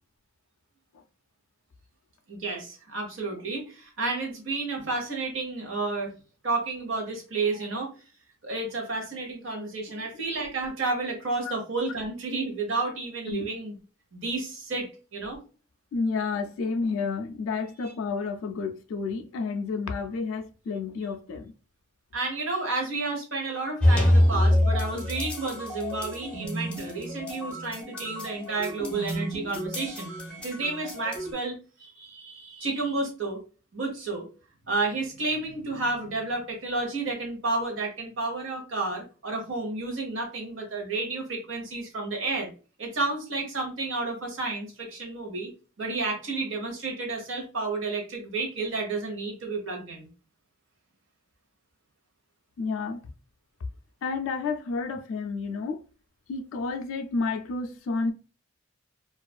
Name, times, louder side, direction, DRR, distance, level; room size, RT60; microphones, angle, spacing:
voice 1, 2.3-6.1 6.4-7.9 8.4-13.7 14.1-15.4 22.1-30.1 30.4-33.4 33.7-34.3 34.7-42.5 42.8-45.5 45.8-50.1, right 3 dB, 70° right, 0.9 m, -31 dB
voice 2, 15.9-21.5 52.6-53.1 54.0-55.8 56.3-58.1, left 4 dB, 75° left, 0.3 m, -30 dB
sound 1, 23.8-31.3, left 1 dB, 5° left, 0.5 m, -27 dB
2.4 x 2.3 x 2.3 m
head